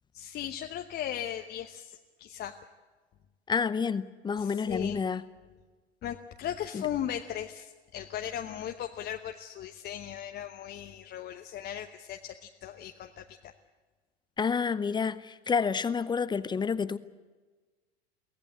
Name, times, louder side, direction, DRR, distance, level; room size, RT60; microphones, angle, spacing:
voice 1, 0.1-2.6 4.4-5.0 6.0-13.5, left 10 dB, 30° left, 1.0 m, -37 dB
voice 2, 3.5-5.2 6.7-6.8 14.4-17.0, left 6 dB, 15° left, 0.7 m, -29 dB
23.5 x 17.0 x 8.9 m
figure-of-eight pair, 90°, 33 cm